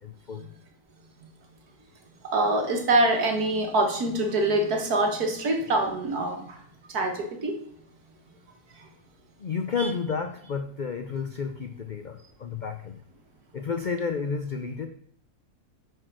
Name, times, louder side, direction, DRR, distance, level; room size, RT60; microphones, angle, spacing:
voice 1, 0.0-0.5 9.4-13.0 13.5-14.9, left 5 dB, 75° left, 7 dB, 0.4 m, -31 dB
voice 2, 2.3-6.6 6.9-7.6 8.8-8.9 9.8-9.9, right 2 dB, 75° right, 3 dB, 2.1 m, -25 dB
8.7 x 4.9 x 6.1 m, 0.63 s
omnidirectional pair, 1.6 m